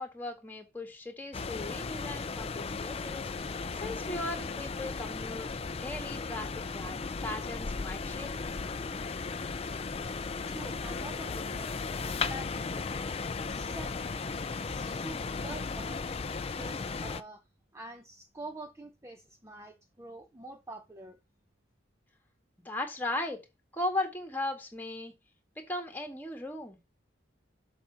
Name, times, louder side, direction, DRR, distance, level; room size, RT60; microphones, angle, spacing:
voice 1, 0.0-3.3 3.8-5.5 5.7-7.0 7.2-8.3 22.7-23.5 23.7-25.1 25.7-26.8, left 2 dB, 10° left, 1.8 m, -37 dB
sound 1, 1.3-17.2, left 4 dB, 30° left, 0.4 m, -36 dB
voice 2, 10.5-12.8 13.5-14.1 14.6-16.1 16.5-17.4 17.7-21.2, right 1 dB, 15° right, 0.6 m, -46 dB
7.1 x 5.1 x 5.7 m
head